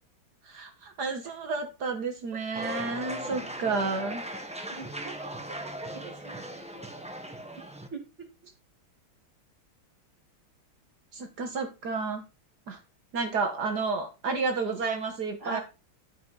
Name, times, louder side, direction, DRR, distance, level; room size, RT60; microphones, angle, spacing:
voice 1, 0.4-4.2 11.1-12.2 12.7-12.8 13.1-15.6, right 4 dB, 55° right, 4 dB, 1.6 m, -31 dB
sound 1, 2.5-7.9, equal, 10° right, 0.4 m, -38 dB
voice 2, 4.7-5.3 5.6-6.4 6.7-6.8 7.9-8.3 15.4-15.6, right 4 dB, 35° right, 0 dB, 2.8 m, -41 dB
11.5 x 5.0 x 3.9 m, 0.30 s
omnidirectional pair, 2.3 m